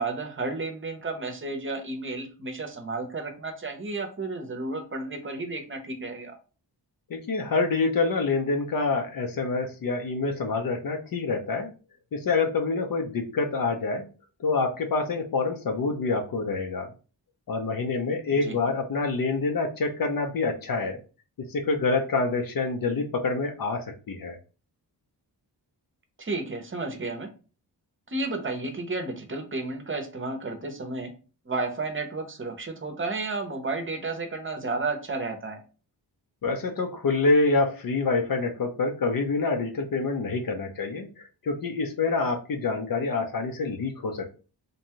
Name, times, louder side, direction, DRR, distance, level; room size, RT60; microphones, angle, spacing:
voice 1, 0.0-6.3 18.3-18.6 26.2-27.3 28.1-31.1 31.5-35.6, right 3 dB, 30° right, 5 dB, 0.7 m, -32 dB
voice 2, 7.1-11.7 12.1-14.1 14.4-16.9 17.5-21.0 21.5-24.4 36.4-44.3, left 3 dB, 55° left, 4 dB, 0.5 m, -26 dB
2.6 x 2.2 x 2.8 m, 0.35 s
wide cardioid pair, 90°, 41 cm